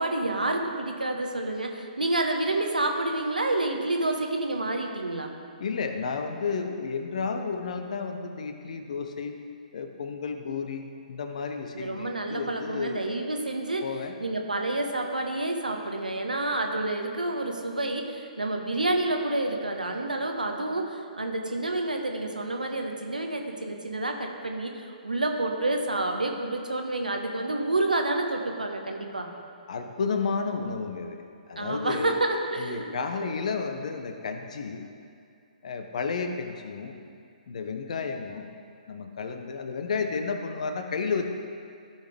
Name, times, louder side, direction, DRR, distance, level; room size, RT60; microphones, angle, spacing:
voice 1, 0.0-5.3 11.7-13.9 14.2-29.3 31.6-33.0, right 2 dB, 80° right, 3 dB, 1.1 m, -29 dB
voice 2, 5.6-9.4 9.7-13.1 13.8-14.1 29.7-32.2 32.6-34.9 35.6-37.0 37.5-38.5 38.9-41.3, left 5 dB, 55° left, 6 dB, 0.8 m, -32 dB
14.5 x 5.8 x 3.5 m, 2.3 s
figure-of-eight pair, 125°, 4 cm